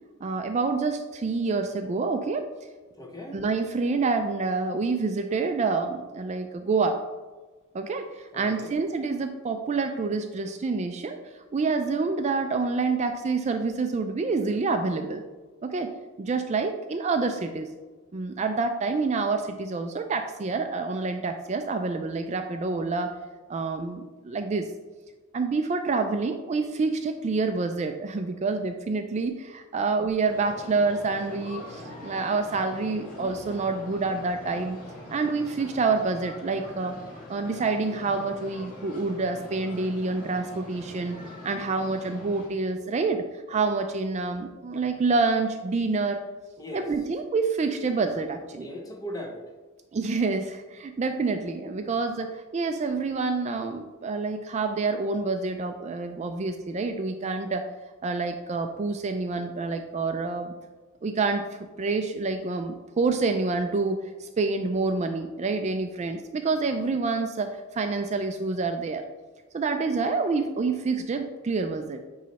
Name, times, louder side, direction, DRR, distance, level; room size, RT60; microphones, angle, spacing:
voice 1, 0.2-2.5 3.3-7.0 7.7-15.2 15.6-17.7 18.1-23.2 23.5-24.7 25.3-34.8 35.1-37.0 37.3-41.2 41.4-46.2 46.7-48.7 49.9-57.7 58.0-60.5 61.0-61.5 61.8-69.0 69.5-72.0, right 4 dB, 30° right, 7 dB, 0.3 m, -27 dB
voice 2, 3.0-3.4 8.1-8.7 46.6-46.9 48.6-49.4, equal, 15° left, 1 dB, 0.9 m, -39 dB
sound 1, 30.2-42.5, left 1 dB, 40° left, 1.7 m, -43 dB
9.3 x 3.2 x 4.1 m, 1.3 s
head